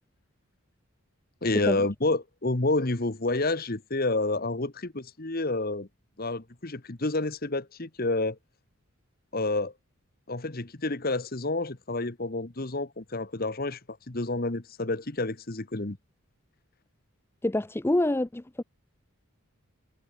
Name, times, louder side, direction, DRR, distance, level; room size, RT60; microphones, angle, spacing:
voice 1, 1.4-5.9 6.2-8.4 9.3-9.7 10.3-13.8 14.1-16.0, left 2 dB, 40° left, 1.3 m, -29 dB
voice 2, 17.4-18.6, left 1 dB, 10° left, 0.4 m, -26 dB
head